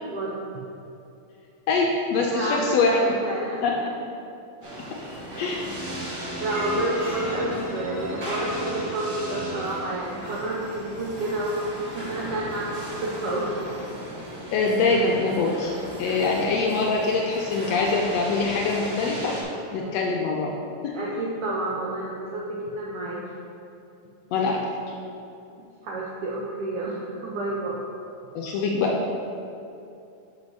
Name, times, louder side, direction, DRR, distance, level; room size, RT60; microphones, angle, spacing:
voice 1, 0.1-0.4 2.3-3.8 5.5-5.6 6.4-13.5 19.8-20.0 20.9-23.2 25.8-27.8, right 1 dB, 80° right, -4 dB, 1.3 m, -30 dB
voice 2, 1.7-3.0 3.6-3.8 5.4-5.7 14.5-15.7 16.0-19.4 19.7-20.5 20.8-20.9 24.3-24.6 28.3-28.9, left 4 dB, 80° left, -1 dB, 1.5 m, -23 dB
sound 1, 4.6-19.4, right 1 dB, 50° right, 1.4 m, -36 dB
sound 2, 5.6-10.4, right 1 dB, 15° right, 0.7 m, -36 dB
6.2 x 5.2 x 5.2 m, 2.7 s
omnidirectional pair, 3.4 m